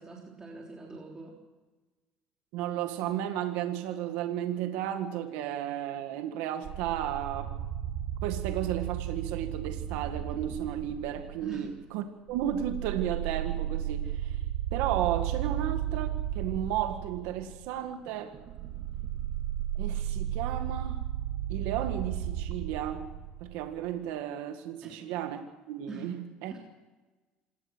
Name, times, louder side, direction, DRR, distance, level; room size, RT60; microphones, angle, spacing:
voice 1, 0.0-1.4 11.4-11.7 24.8-25.0 25.9-26.2 26.5-26.6, right 4 dB, 20° right, -1 dB, 3.6 m, -43 dB
voice 2, 2.5-7.6 8.2-14.4 14.7-18.4 19.8-21.0 21.5-23.1 23.4-26.5, right 11 dB, 85° right, 6 dB, 1.8 m, -33 dB
sound 1, 6.6-11.8 12.3-23.8, right 11 dB, 60° right, 2.7 m, -34 dB
26.5 x 18.5 x 6.3 m, 1.2 s
cardioid pair, 125°, 3 cm